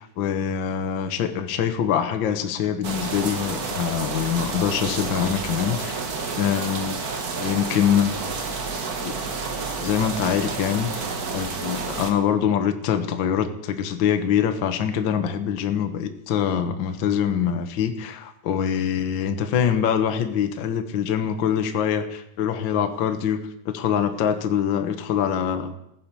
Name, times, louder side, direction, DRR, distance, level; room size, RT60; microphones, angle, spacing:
voice 1, 0.0-6.0 6.3-7.0 7.4-8.1 9.0-9.1 9.8-10.9 11.3-23.4 23.6-25.7, left 8 dB, 85° left, 7 dB, 1.0 m, -24 dB
sound 1, 2.8-12.1, right 4 dB, 55° right, 1.0 m, -30 dB
15.5 x 10.5 x 6.9 m, 0.81 s
omnidirectional pair, 3.8 m